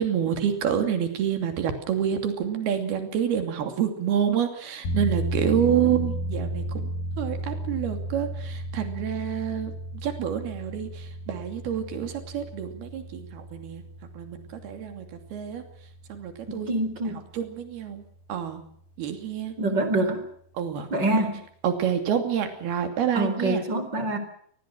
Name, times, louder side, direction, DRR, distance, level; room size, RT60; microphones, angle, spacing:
voice 1, 0.0-6.9 7.2-9.7 10.0-13.8 14.2-15.1 15.3-15.6 16.1-16.7 17.1-18.0 18.3-18.6 19.0-19.5 20.6-20.9 21.6-23.6, right 9 dB, 80° right, 6 dB, 4.7 m, -28 dB
sound 1, 4.8-17.4 17.7-17.8, right 1 dB, 65° left, 7.7 m, -33 dB
voice 2, 16.5-17.2 19.6-20.2 20.9-21.4 23.1-24.2, right 2 dB, 25° right, 9 dB, 4.5 m, -25 dB
27.0 x 20.0 x 6.3 m, 0.65 s
omnidirectional pair, 4.5 m